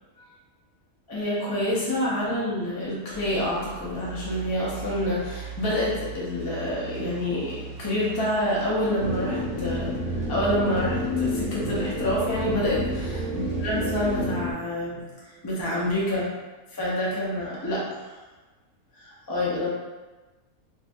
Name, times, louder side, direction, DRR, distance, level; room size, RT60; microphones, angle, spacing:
voice 1, 1.1-9.9 10.3-15.1 15.4-16.3 16.7-18.1 19.0-19.7, left 1 dB, 25° left, -7 dB, 0.6 m, -27 dB
sound 1, 3.1-14.3, right 4 dB, 90° right, 1.2 m, -40 dB
sound 2, 9.0-14.5, left 1 dB, 65° left, 0.9 m, -29 dB
2.7 x 2.5 x 3.4 m, 1.2 s
omnidirectional pair, 1.5 m